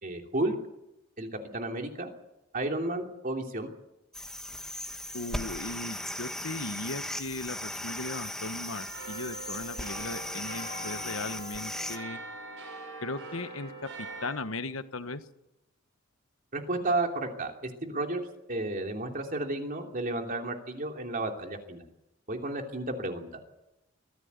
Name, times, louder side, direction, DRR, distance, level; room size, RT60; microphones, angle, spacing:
voice 1, 0.0-0.6 1.2-2.1 2.5-3.7 16.5-18.2 18.5-21.8 22.3-23.3, right 2 dB, 45° right, 3 dB, 3.0 m, -32 dB
sound 1, 4.1-12.0, left 1 dB, 5° left, 1.6 m, -37 dB
voice 2, 5.1-12.2 13.0-13.7 14.0-15.2, left 2 dB, 75° left, 11 dB, 1.3 m, -37 dB
sound 2, 8.7-14.3, right 2 dB, 70° right, 7.8 m, -42 dB
23.0 x 15.5 x 8.2 m, 0.91 s
head